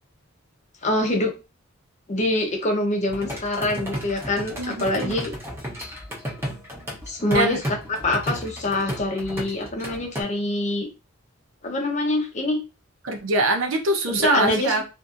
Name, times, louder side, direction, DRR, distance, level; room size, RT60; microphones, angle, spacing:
voice 1, 0.8-1.3 2.1-5.3 7.1-7.6 7.9-10.9 11.6-12.6 14.1-14.8, left 1 dB, 35° left, 3 dB, 0.7 m, -25 dB
sound 1, 3.1-10.2, equal, 10° right, 0.8 m, -33 dB
voice 2, 4.6-5.2 7.3-7.6 13.0-14.8, right 2 dB, 70° right, 4 dB, 0.6 m, -23 dB
2.7 x 2.5 x 2.4 m, 0.29 s
head